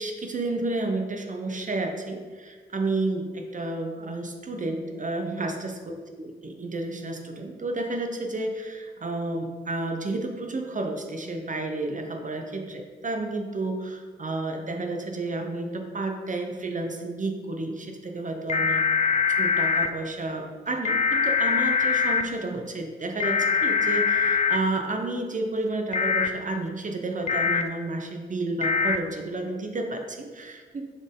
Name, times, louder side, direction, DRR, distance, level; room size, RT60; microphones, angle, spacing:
voice 1, 0.0-5.8 6.2-18.8 19.3-30.8, right 2 dB, 40° right, 3 dB, 0.7 m, -31 dB
sound 1, 18.5-19.9 20.8-22.2 23.2-24.6 25.9-26.3 27.3-27.6 28.6-29.0, left 6 dB, 30° left, 0.4 m, -23 dB
6.8 x 4.4 x 3.6 m, 1.5 s
cardioid pair, 80°, 21 cm